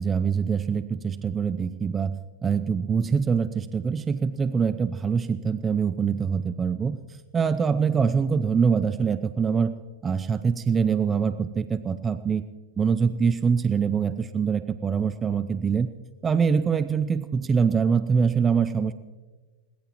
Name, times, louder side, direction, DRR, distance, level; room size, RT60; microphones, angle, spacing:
voice 1, 0.0-2.2 2.4-9.7 10.0-12.4 12.8-15.9 16.2-18.9, right 6 dB, 20° right, 12 dB, 0.5 m, -24 dB
21.0 x 19.5 x 3.0 m, 1.3 s
supercardioid pair, 140°, 0 cm